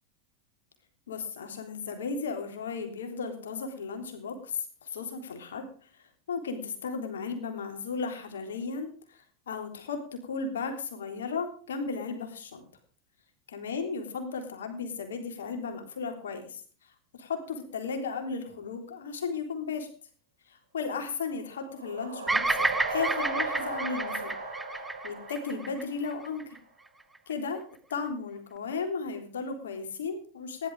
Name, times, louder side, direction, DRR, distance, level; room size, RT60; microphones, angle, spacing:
voice 1, 1.1-5.9 6.3-12.6 13.5-16.6 17.2-19.9 20.5-24.3 25.0-26.6 27.3-30.7, left 5 dB, 75° left, 5 dB, 3.5 m, -35 dB
sound 1, 21.4-26.3, right 3 dB, 90° right, 3.9 m, -37 dB
Bird vocalization bird call bird song, 22.3-26.6, right 2 dB, 10° right, 1.0 m, -30 dB
15.5 x 11.5 x 5.0 m, 0.42 s
hypercardioid pair, 90°, 0 cm